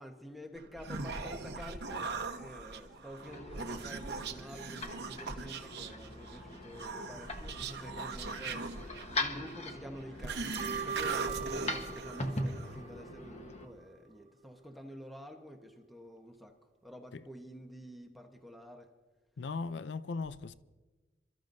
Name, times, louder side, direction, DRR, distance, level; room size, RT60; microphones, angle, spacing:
voice 1, 0.0-16.6 16.8-18.9, equal, ahead, 1.0 m, -49 dB
Human voice, 0.6-12.8, right 4 dB, 60° right, 1.0 m, -41 dB
sound 1, 3.1-13.7, left 2 dB, 35° left, 1.2 m, -42 dB
sound 2, 10.4-13.6 13.9-14.0, right 6 dB, 35° right, 1.4 m, -40 dB
voice 2, 19.4-20.5, left 4 dB, 70° left, 0.5 m, -38 dB
28.0 x 13.5 x 2.6 m
head